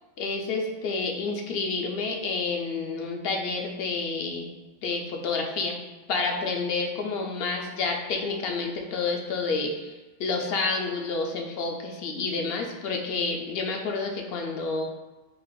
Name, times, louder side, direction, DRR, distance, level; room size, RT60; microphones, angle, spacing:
voice 1, 0.2-4.5 4.8-5.8 6.1-14.8, left 4 dB, 70° left, 2 dB, 0.8 m, -29 dB
5.6 x 2.4 x 2.2 m, 1.2 s
omnidirectional pair, 1.1 m